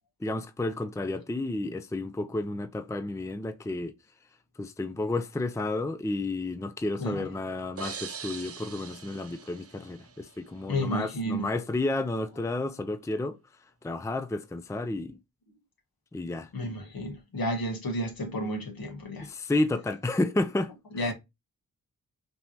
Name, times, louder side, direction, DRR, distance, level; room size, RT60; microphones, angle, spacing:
voice 1, 0.2-3.9 4.6-13.4 13.8-15.2 16.1-16.5 19.2-21.1, left 2 dB, 10° left, 0.5 m, -31 dB
sound 1, 7.8-10.5, right 6 dB, 40° right, 0.6 m, -42 dB
voice 2, 10.7-11.5 16.5-19.3 20.9-21.1, equal, 65° left, 1.6 m, -31 dB
5.3 x 3.0 x 2.9 m
cardioid pair, 40°, 38 cm